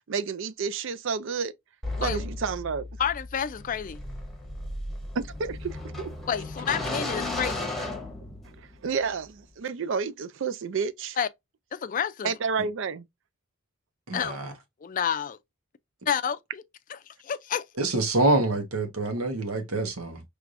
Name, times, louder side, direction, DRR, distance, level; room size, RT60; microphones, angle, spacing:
voice 1, 0.1-1.5 2.0-2.9 5.1-6.1 8.8-11.2 12.2-13.0, right 5 dB, 60° right, 0.4 m, -30 dB
sound 1, 1.8-8.8, left 2 dB, ahead, 1.1 m, -35 dB
voice 2, 3.0-4.0 6.3-7.7 11.2-11.3 11.7-12.3 14.1-14.4 14.8-15.4 16.1-16.6 17.2-17.6, left 8 dB, 40° left, 0.4 m, -29 dB
voice 3, 14.1-14.5 17.8-20.2, right 2 dB, 85° right, 1.3 m, -26 dB
4.7 x 3.3 x 2.5 m
head